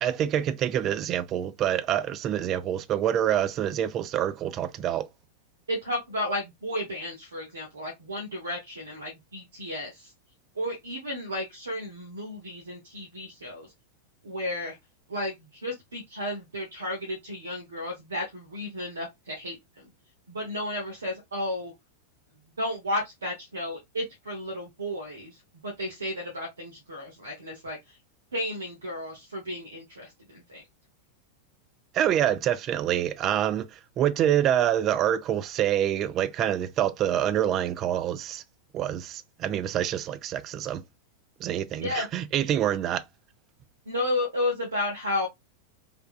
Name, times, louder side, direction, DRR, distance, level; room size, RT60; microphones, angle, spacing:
voice 1, 0.0-5.0 31.9-38.4 38.7-40.8 41.4-43.0, right 10 dB, 35° right, 0.4 m, -26 dB
voice 2, 5.7-10.1 10.5-13.7 14.2-14.8 15.1-19.9 20.3-21.7 22.6-28.0 28.3-30.6 41.8-42.1 43.9-45.3, left 1 dB, 70° right, 0.8 m, -33 dB
3.4 x 2.2 x 2.4 m
figure-of-eight pair, 90°, 0 cm